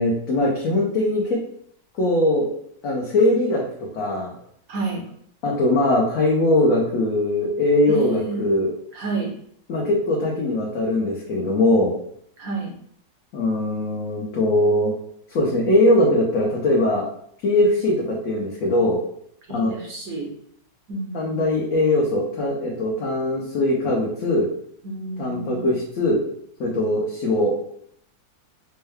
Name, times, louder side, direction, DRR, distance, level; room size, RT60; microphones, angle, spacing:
voice 1, 0.0-1.4 1.9-2.5 2.8-3.6 3.9-4.3 5.4-8.7 9.7-11.9 13.3-14.9 15.3-17.1 17.4-19.0 19.5-19.8 21.1-24.5 25.2-26.2 26.6-27.5, left 1 dB, 60° left, -3 dB, 1.0 m, -21 dB
voice 2, 4.7-5.0 7.9-8.5 8.9-9.3 12.4-12.7 19.5-20.3 20.9-21.6 24.8-25.7, right 3 dB, 65° right, 0 dB, 1.1 m, -30 dB
4.4 x 2.2 x 3.3 m, 0.66 s
omnidirectional pair, 1.8 m